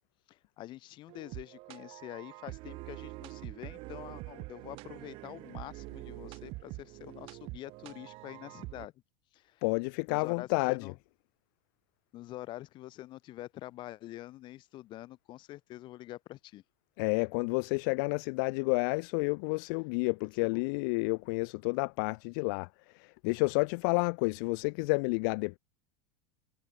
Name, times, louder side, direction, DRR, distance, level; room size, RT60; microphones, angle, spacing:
voice 1, 0.3-8.9 9.3-9.6 10.1-10.9 12.1-16.6 20.4-20.6, left 15 dB, 35° left, 4.0 m, -46 dB
sound 1, 1.1-8.9, right 22 dB, 45° right, 3.5 m, -45 dB
voice 2, 9.6-10.9 17.0-25.6, left 32 dB, 50° left, 0.4 m, -30 dB
supercardioid pair, 155°, 13 cm